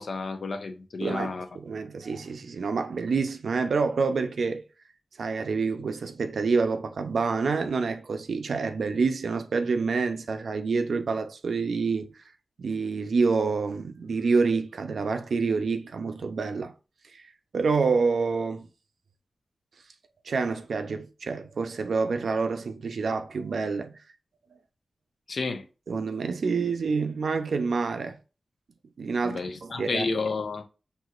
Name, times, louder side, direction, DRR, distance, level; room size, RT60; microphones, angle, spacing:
voice 1, 0.0-1.5 25.3-25.6 29.2-30.6, left 3 dB, 70° left, 0.7 m, -31 dB
voice 2, 1.0-4.6 5.2-12.2 12.6-16.7 17.1-17.2 17.5-18.7 20.2-24.0 25.9-28.2 29.0-30.1, right 4 dB, 90° right, 0.6 m, -27 dB
6.1 x 2.9 x 2.4 m
wide cardioid pair, 110°, 0 cm